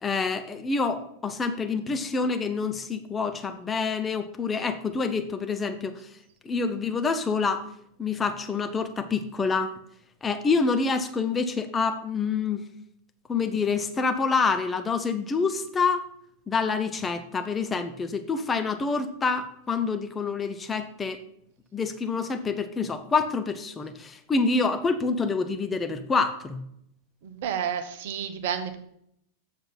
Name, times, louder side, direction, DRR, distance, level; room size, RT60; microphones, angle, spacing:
voice 1, 0.0-5.9 6.4-7.7 8.0-9.7 10.2-12.6 13.3-16.0 16.5-21.2 21.7-26.6, left 4 dB, 15° left, 8 dB, 0.9 m, -27 dB
voice 2, 27.2-28.8, right 8 dB, 55° right, 8 dB, 1.1 m, -30 dB
7.9 x 6.8 x 5.9 m, 0.72 s
figure-of-eight pair, 90°, 0 cm